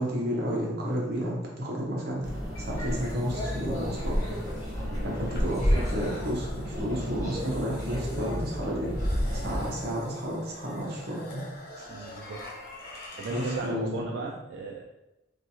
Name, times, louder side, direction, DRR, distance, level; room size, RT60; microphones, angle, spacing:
voice 1, 0.0-4.2 5.0-8.9 9.3-11.4 13.3-13.9 14.2-14.3, equal, 60° right, -3 dB, 0.8 m, -31 dB
sound 1, 2.2-9.7, equal, 20° left, 0.9 m, -34 dB
sound 2, 3.1-13.7, equal, 55° left, 0.6 m, -35 dB
voice 2, 4.8-5.1 11.9-12.4 13.2-14.8, right 4 dB, 80° right, 0 dB, 0.3 m, -36 dB
sound 3, 6.0-8.7, equal, ahead, 0.4 m, -44 dB
2.8 x 2.3 x 2.7 m, 0.94 s
head